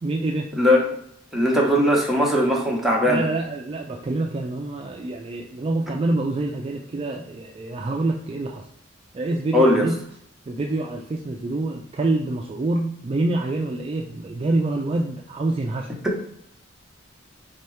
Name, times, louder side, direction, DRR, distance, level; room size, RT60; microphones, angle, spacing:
voice 1, 0.0-0.5 3.0-8.7 9.1-10.0 10.5-15.9, right 2 dB, 30° right, 1 dB, 0.3 m, -26 dB
voice 2, 1.3-3.3 9.5-9.9 16.0-16.1, left 1 dB, ahead, -3 dB, 0.9 m, -19 dB
4.5 x 2.8 x 3.2 m, 0.67 s
head